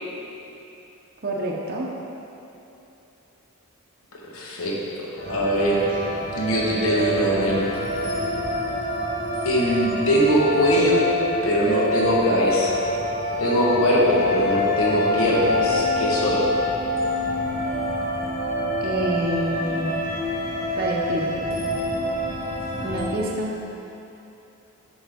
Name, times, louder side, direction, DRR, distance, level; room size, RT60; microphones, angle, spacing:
voice 1, 1.2-1.9 18.8-19.9 20.8-21.5 22.8-23.6, right 1 dB, 45° right, -3 dB, 0.6 m, -27 dB
voice 2, 4.3-4.8 5.3-6.0 6.3-7.7 9.4-11.1 11.4-12.8 13.4-16.5, equal, 70° left, -4 dB, 1.1 m, -21 dB
sound 1, 5.2-23.0, left 1 dB, 45° left, 1.3 m, -26 dB
7.4 x 5.3 x 3.5 m, 3.0 s
head